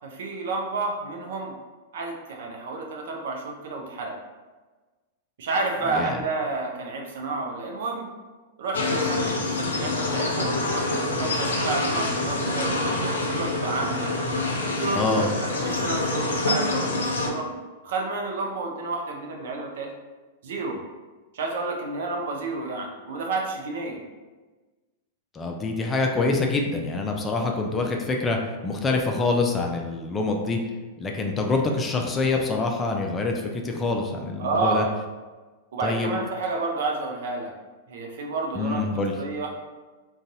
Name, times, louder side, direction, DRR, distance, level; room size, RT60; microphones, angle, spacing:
voice 1, 0.0-1.5 1.9-4.1 5.4-8.1 8.6-9.2 9.4-14.1 14.8-15.3 15.5-17.5 17.8-19.9 20.4-20.8 21.3-24.0 34.4-34.9 35.7-37.5 37.9-38.9 39.2-39.5, right 3 dB, 65° right, 1 dB, 0.6 m, -30 dB
sound 1, 8.7-17.3, left 2 dB, 75° left, 0.6 m, -26 dB
voice 2, 14.9-15.3 25.3-28.4 28.6-30.6 31.0-34.9 35.8-36.2 38.5-39.1, left 3 dB, 20° left, 2 dB, 0.4 m, -25 dB
3.8 x 2.3 x 2.7 m, 1.3 s
figure-of-eight pair, 100°, 0 cm